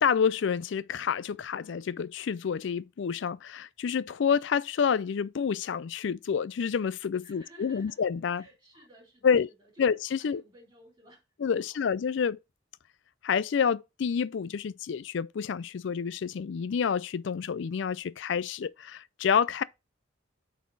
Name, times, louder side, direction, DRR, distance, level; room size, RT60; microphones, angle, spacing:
voice 1, 0.0-8.4 9.2-9.5 9.8-10.4 11.4-12.4 13.2-19.6, left 6 dB, 65° left, 0.4 m, -28 dB
voice 2, 7.2-8.0 8.3-9.8 10.2-11.2 11.5-11.8, right 1 dB, 20° right, 3.4 m, -56 dB
8.3 x 4.1 x 3.9 m
head